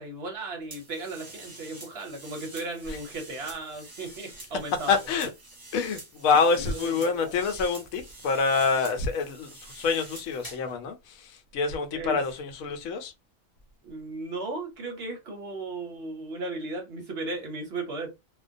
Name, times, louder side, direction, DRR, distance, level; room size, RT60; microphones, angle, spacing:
voice 1, 0.0-5.0 11.9-12.2 13.8-18.1, right 2 dB, 60° right, 0.8 m, -36 dB
sound 1, 0.7-10.7, right 1 dB, 20° right, 0.6 m, -45 dB
voice 2, 4.9-5.3 5.7-11.0 11.5-13.1, left 4 dB, 80° left, 1.0 m, -26 dB
2.3 x 2.1 x 2.5 m
omnidirectional pair, 1.4 m